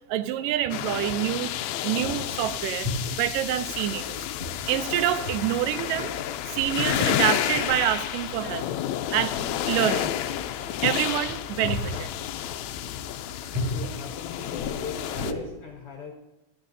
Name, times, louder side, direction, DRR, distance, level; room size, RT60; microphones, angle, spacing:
voice 1, 0.1-1.5 1.8-2.9 3.2-4.3 4.7-6.1 6.5-8.7 9.1-9.3 9.7-10.2 10.8-12.1, right 11 dB, 80° right, 12 dB, 2.2 m, -27 dB
sound 1, 0.7-15.3, left 11 dB, 90° left, 1.6 m, -30 dB
sound 2, 1.5-1.6 2.0-2.3 2.8-3.3 4.4-4.9 5.3-5.5 5.7-5.8 6.3-7.1 7.6-7.9 8.6-8.8 9.3-9.9 10.9-12.0 13.5-13.9 14.5-15.4, left 1 dB, 40° right, 6.3 m, -34 dB
sound 3, 2.2-15.6, equal, 25° right, 1.8 m, -49 dB
voice 2, 13.6-16.1, left 5 dB, 65° left, 1 dB, 1.5 m, -39 dB
17.5 x 12.0 x 2.7 m, 1.0 s
omnidirectional pair, 3.9 m